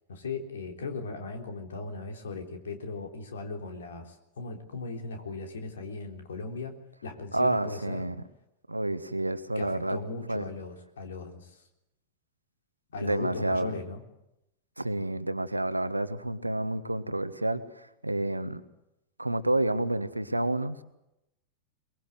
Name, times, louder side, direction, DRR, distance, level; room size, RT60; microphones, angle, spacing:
voice 1, 0.1-6.7 7.0-8.0 9.6-11.6 12.9-14.0, left 3 dB, 65° left, 4 dB, 3.7 m, -38 dB
voice 2, 7.3-8.2 8.7-10.0 10.3-10.4 13.0-13.7 14.8-18.6 19.2-20.8, right 1 dB, 85° right, 13 dB, 1.3 m, -29 dB
23.0 x 22.5 x 8.0 m, 0.87 s
figure-of-eight pair, 90°, 0 cm